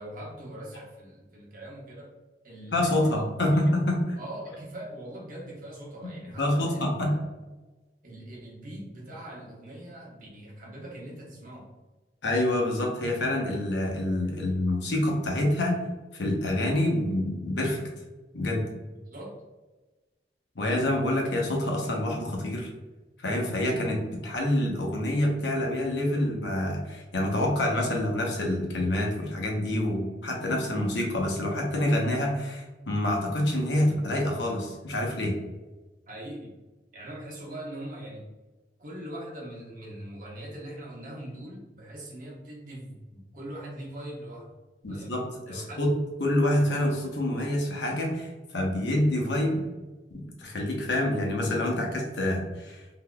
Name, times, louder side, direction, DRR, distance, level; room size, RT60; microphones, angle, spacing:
voice 1, 0.0-2.1 2.4-3.7 4.2-7.3 8.0-11.7 18.9-19.4 36.1-36.5 36.9-38.3 38.8-44.5 44.9-45.2 45.5-45.9, right 1 dB, 50° right, -3 dB, 1.0 m, -41 dB
voice 2, 2.7-4.2 6.4-7.1 12.2-15.8 16.1-17.9 18.3-18.6 20.6-22.7 23.2-35.4 44.8-49.7 50.1-52.8, left 1 dB, 80° left, 0 dB, 0.8 m, -27 dB
3.7 x 2.8 x 2.3 m, 1.2 s
head